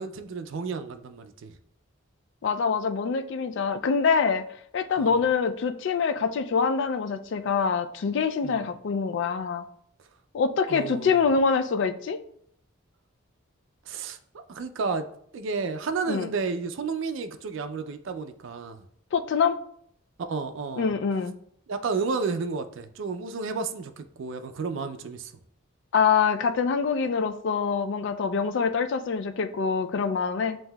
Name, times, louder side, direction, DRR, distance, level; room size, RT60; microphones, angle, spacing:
voice 1, 0.0-1.5 3.6-3.7 5.0-5.2 8.4-8.6 10.7-11.2 13.9-14.2 14.5-15.1 15.3-18.8 20.2-20.9 21.7-25.3, right 4 dB, 65° right, 0.4 m, -32 dB
voice 2, 2.4-4.4 4.7-9.6 10.3-12.2 16.1-16.3 19.1-19.6 20.8-21.3 25.9-30.6, left 5 dB, 60° left, 0.3 m, -25 dB
7.2 x 2.7 x 2.2 m
head